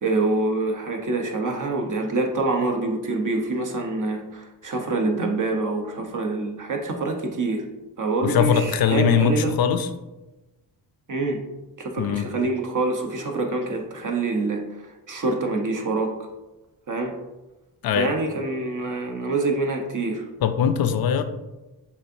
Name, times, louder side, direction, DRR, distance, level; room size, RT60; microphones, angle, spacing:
voice 1, 0.0-7.6 8.0-9.5 11.1-11.4 11.8-14.6 15.1-16.1 16.9-17.1 17.9-20.2, right 3 dB, 45° right, 3 dB, 1.0 m, -26 dB
voice 2, 8.2-9.9 12.0-12.3 17.8-18.1 20.4-21.2, left 8 dB, 55° left, 10 dB, 0.6 m, -21 dB
6.8 x 2.7 x 2.7 m, 1.1 s
supercardioid pair, 55°, 42 cm